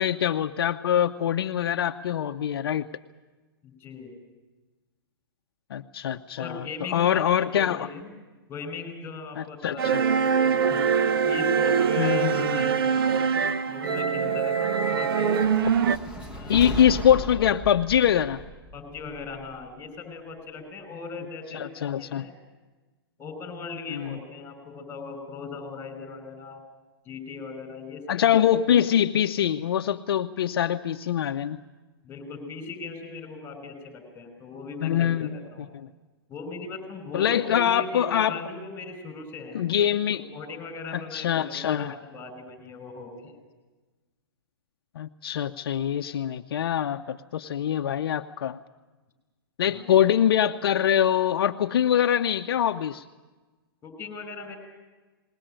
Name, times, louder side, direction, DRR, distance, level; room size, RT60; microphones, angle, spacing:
voice 1, 0.0-2.9 5.7-6.6 6.9-7.9 9.4-10.0 12.0-12.7 16.5-18.4 21.5-22.3 23.9-24.2 28.1-31.6 34.8-35.4 37.1-38.4 39.5-40.2 40.9-41.9 45.0-48.6 49.6-53.0, left 10 dB, 65° left, 6 dB, 0.7 m, -24 dB
voice 2, 3.6-4.2 6.3-8.1 8.5-10.9 11.2-13.0 13.5-15.5 16.3-16.6 18.7-22.3 23.2-26.6 27.1-28.4 32.0-35.7 36.3-39.6 40.0-43.3 49.6-49.9 53.8-54.6, left 4 dB, 15° left, 8 dB, 5.5 m, -39 dB
sound 1, 9.8-16.0, right 6 dB, 65° right, 0.9 m, -23 dB
sound 2, 15.4-19.7, equal, 10° right, 1.7 m, -36 dB
20.5 x 18.5 x 8.9 m, 1.2 s
hypercardioid pair, 140°, 13 cm